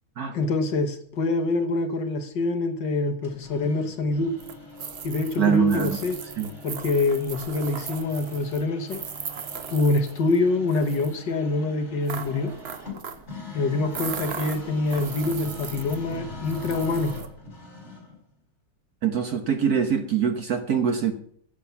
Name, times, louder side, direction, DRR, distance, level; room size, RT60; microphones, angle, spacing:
voice 1, 0.3-4.3 5.0-6.2 6.6-9.0 9.7-12.5 13.5-17.1, left 3 dB, 60° left, 7 dB, 1.8 m, -25 dB
sound 1, 3.2-18.2, left 2 dB, 30° left, 4.6 m, -42 dB
sound 2, 4.4-10.4 10.7-11.2 12.1-13.3 13.9-16.1 16.5-17.3, right 7 dB, 80° right, 0.5 m, -38 dB
voice 2, 5.4-6.0 6.4-6.5 19.0-21.1, right 7 dB, 55° right, 7 dB, 1.3 m, -23 dB
10.0 x 7.6 x 7.1 m, 0.63 s
omnidirectional pair, 2.4 m